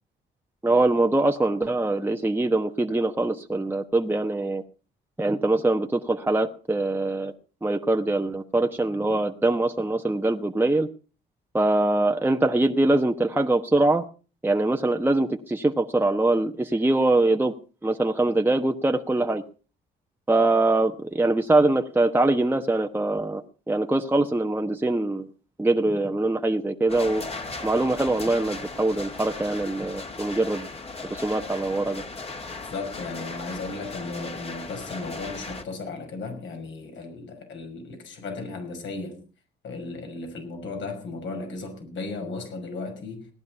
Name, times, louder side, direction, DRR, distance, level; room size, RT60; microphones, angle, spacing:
voice 1, 0.6-4.6 5.2-7.3 7.6-10.9 11.5-14.0 14.4-17.5 17.8-19.4 20.3-23.4 23.7-25.3 25.6-27.2 27.6-30.7 31.1-32.0, right 2 dB, 10° right, 1.2 m, -23 dB
sound 1, 26.9-35.6, left 3 dB, 30° left, 2.3 m, -37 dB
voice 2, 32.7-39.2 39.6-43.3, left 3 dB, 70° left, 6.0 m, -35 dB
17.5 x 10.5 x 5.7 m
cardioid pair, 90°, 20 cm